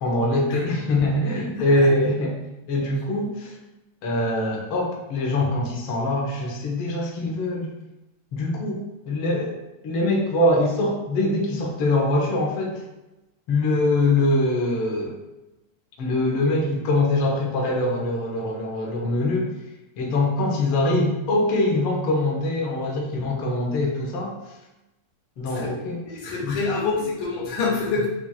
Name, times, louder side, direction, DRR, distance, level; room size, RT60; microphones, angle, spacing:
voice 1, 0.0-2.3 2.7-3.5 4.0-7.7 8.3-9.5 9.8-12.8 13.5-15.2 16.0-19.5 20.0-24.3 25.4-26.0 26.4-26.6, left 2 dB, 65° left, -2 dB, 1.4 m, -23 dB
voice 2, 1.6-1.9 25.4-25.7 26.1-28.1, left 4 dB, 85° left, -5 dB, 2.4 m, -27 dB
7.3 x 2.5 x 2.2 m, 0.98 s
omnidirectional pair, 3.3 m